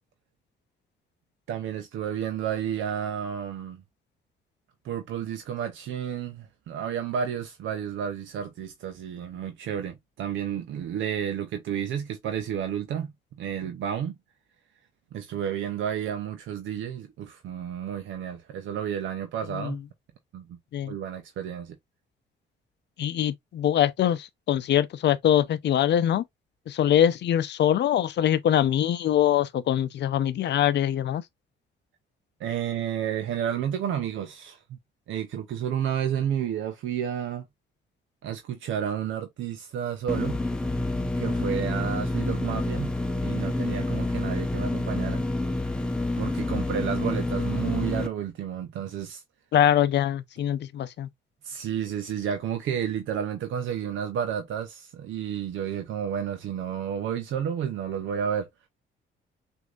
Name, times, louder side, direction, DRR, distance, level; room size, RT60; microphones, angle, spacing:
voice 1, 1.5-3.8 4.8-14.1 15.1-19.8 20.3-20.6 20.8-21.8 32.4-34.8 35.1-37.5 38.2-40.4 41.2-43.0 43.2-45.3 46.2-49.2 51.4-58.5, right 9 dB, 75° right, 0.7 m, -31 dB
voice 2, 23.0-26.2 26.7-31.2 49.5-51.1, left 10 dB, 60° left, 0.6 m, -23 dB
sound 1, 40.1-48.1, left 2 dB, 5° left, 0.8 m, -28 dB
6.2 x 2.7 x 2.4 m
cardioid pair, 90°, 20 cm